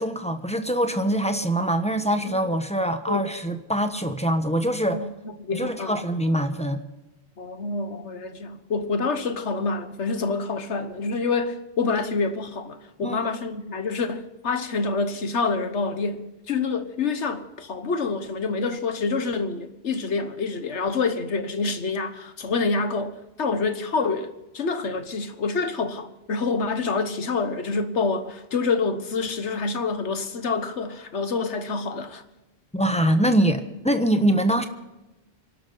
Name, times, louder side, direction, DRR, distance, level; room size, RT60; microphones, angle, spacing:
voice 1, 0.0-5.1 5.5-6.8 13.0-13.2 32.7-34.7, right 1 dB, 5° left, 1.1 m, -23 dB
voice 2, 5.4-6.0 7.4-32.2, left 4 dB, 90° left, 1.6 m, -27 dB
26.0 x 12.0 x 4.0 m
omnidirectional pair, 1.1 m